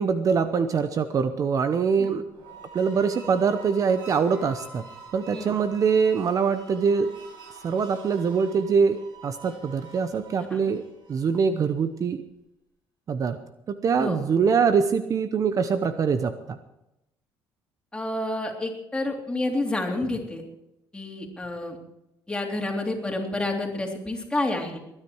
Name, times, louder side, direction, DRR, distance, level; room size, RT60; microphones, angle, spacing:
voice 1, 0.0-2.2 2.7-4.8 5.1-7.1 7.6-10.8 11.1-12.2 13.1-13.4 13.7-16.6, right 6 dB, 45° right, 10 dB, 0.8 m, -23 dB
sound 1, 2.2-11.6, right 4 dB, 70° right, 6.8 m, -46 dB
voice 2, 10.4-10.7 14.0-14.2 17.9-20.4 20.9-21.8 22.3-24.8, left 2 dB, 10° left, 1 dB, 3.3 m, -29 dB
21.0 x 9.9 x 4.7 m, 0.86 s
cardioid pair, 100°, 8 cm